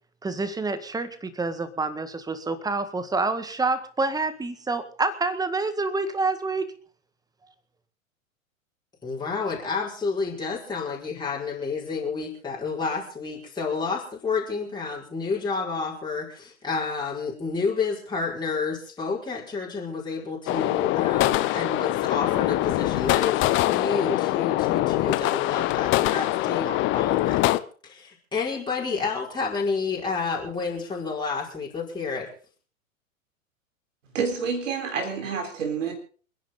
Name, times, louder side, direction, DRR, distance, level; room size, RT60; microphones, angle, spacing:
voice 1, 0.2-6.7, right 3 dB, 10° right, 12 dB, 1.8 m, -27 dB
voice 2, 9.0-27.4 27.8-32.3, left 4 dB, 10° left, -3 dB, 5.0 m, -30 dB
sound 1, 20.5-27.6, left 17 dB, 30° left, 0.9 m, -23 dB
voice 3, 34.1-35.9, right 5 dB, 65° right, 5 dB, 4.1 m, -28 dB
28.0 x 10.5 x 3.9 m, 0.41 s
figure-of-eight pair, 100°, 41 cm